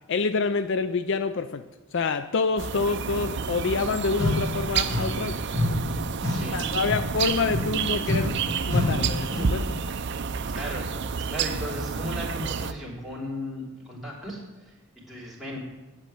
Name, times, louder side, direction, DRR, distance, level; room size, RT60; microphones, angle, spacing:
voice 1, 0.1-1.6 1.9-5.4 6.5-8.4 8.7-9.8, left 4 dB, 60° left, 12 dB, 0.4 m, -27 dB
sound 1, 2.6-12.7, right 5 dB, 60° right, 0.5 m, -30 dB
sound 2, 4.2-5.3 5.5-9.7, left 1 dB, 15° left, 4.2 m, -28 dB
voice 2, 6.3-6.9 10.4-11.0 11.3-15.6, left 1 dB, ahead, -6 dB, 3.5 m, -36 dB
8.3 x 7.9 x 8.8 m, 1.1 s
head